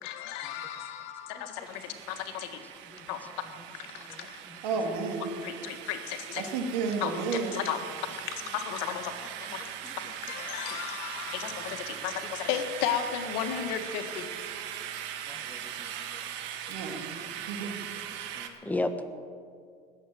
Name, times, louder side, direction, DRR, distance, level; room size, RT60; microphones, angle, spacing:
voice 1, 0.0-2.6 3.1-3.2 3.7-4.4 5.4-6.5 7.0-14.3, left 9 dB, 75° left, 6 dB, 1.7 m, -35 dB
sound 1, 1.6-18.5, right 10 dB, 65° right, 1.5 m, -40 dB
voice 2, 4.6-5.3 6.4-7.6 16.7-17.2 17.4-17.8, right 5 dB, 85° right, 3 dB, 2.4 m, -32 dB
voice 3, 15.3-15.9 18.4-19.0, left 2 dB, 10° left, 8 dB, 1.3 m, -34 dB
20.0 x 8.2 x 7.8 m, 2.2 s
supercardioid pair, 100°, 20 cm